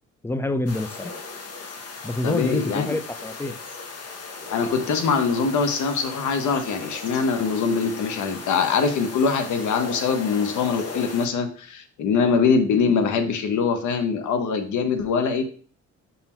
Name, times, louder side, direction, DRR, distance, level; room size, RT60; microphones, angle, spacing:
voice 1, 0.2-1.1 2.0-3.6, left 2 dB, 10° left, 11 dB, 0.5 m, -26 dB
sound 1, 0.7-11.3, left 4 dB, 55° left, 1.3 m, -37 dB
voice 2, 2.2-2.9 4.5-15.4, left 5 dB, 75° left, 8 dB, 1.1 m, -23 dB
5.7 x 4.0 x 4.4 m, 0.43 s
cardioid pair, 90°, 30 cm